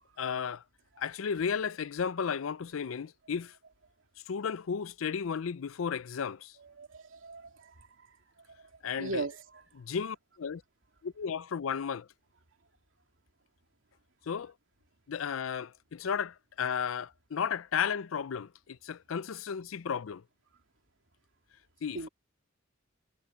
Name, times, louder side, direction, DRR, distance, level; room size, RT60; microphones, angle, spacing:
voice 1, 0.2-0.6 1.0-3.6 4.3-6.6 8.8-9.2 9.8-10.6 11.0-12.1 14.3-14.5 15.1-20.2 21.8-22.1, left 7 dB, 85° left, 0.5 m, -34 dB
voice 2, 6.6-7.9 8.6-9.6 21.9-22.1, right 3 dB, 70° right, 2.8 m, -39 dB
head